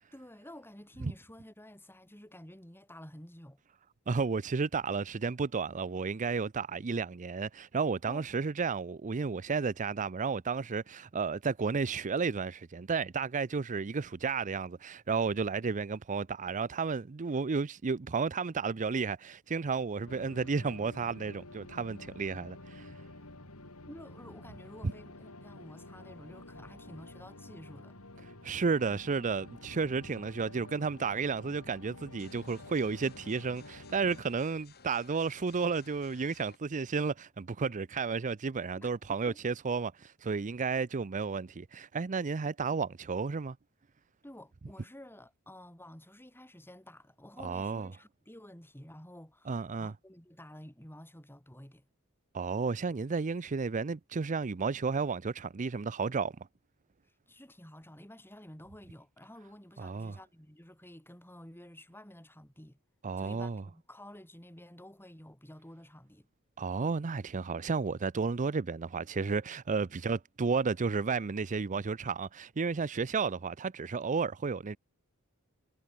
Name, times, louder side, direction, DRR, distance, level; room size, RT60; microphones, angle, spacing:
voice 1, 0.1-3.6 8.0-8.5 23.9-28.0 38.8-38.9 39.3-39.4 44.2-51.9 57.3-62.8 63.2-66.3, left 1 dB, 10° left, 6.4 m, -51 dB
voice 2, 4.1-22.9 24.8-24.9 28.4-43.6 47.4-47.9 49.5-49.9 52.3-56.3 59.8-60.2 63.0-63.6 66.6-74.8, right 5 dB, 35° right, 0.5 m, -32 dB
sound 1, 20.1-34.2, left 2 dB, 75° left, 4.5 m, -50 dB
sound 2, 32.2-36.6, left 5 dB, 45° left, 6.6 m, -58 dB
head